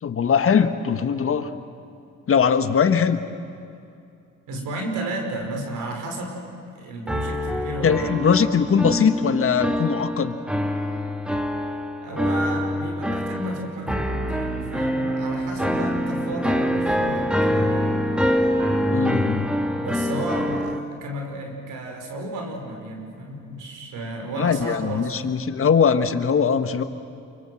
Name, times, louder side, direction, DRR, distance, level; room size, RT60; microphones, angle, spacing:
voice 1, 0.0-1.5 2.3-3.2 7.8-10.3 18.9-19.5 24.4-26.8, left 6 dB, 45° left, 9 dB, 1.7 m, -21 dB
voice 2, 4.5-6.4 6.7-8.1 12.0-17.9 19.8-25.2, right 1 dB, 85° right, 2 dB, 5.4 m, -32 dB
sound 1, 7.1-20.8, equal, 5° right, 1.8 m, -25 dB
28.0 x 24.5 x 7.9 m, 2.5 s
cardioid pair, 90°, 30 cm